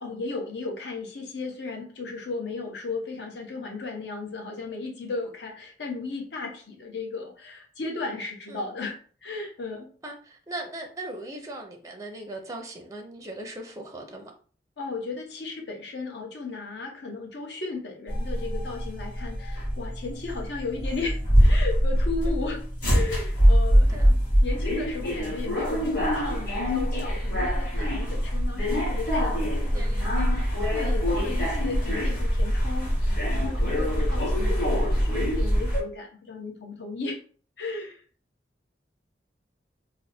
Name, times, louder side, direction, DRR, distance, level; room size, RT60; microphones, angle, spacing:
voice 1, 0.0-9.9 14.8-23.9 24.4-30.2 30.7-37.2 37.6-38.0, left 3 dB, 70° left, 0.9 m, -35 dB
voice 2, 10.0-14.3 22.2-22.5 23.9-24.1 29.6-30.5 31.1-31.3 33.9-34.2, right 1 dB, 20° right, 0.5 m, -39 dB
sound 1, 18.1-35.8, equal, 55° left, 1.8 m, -24 dB
3.4 x 2.0 x 4.1 m
head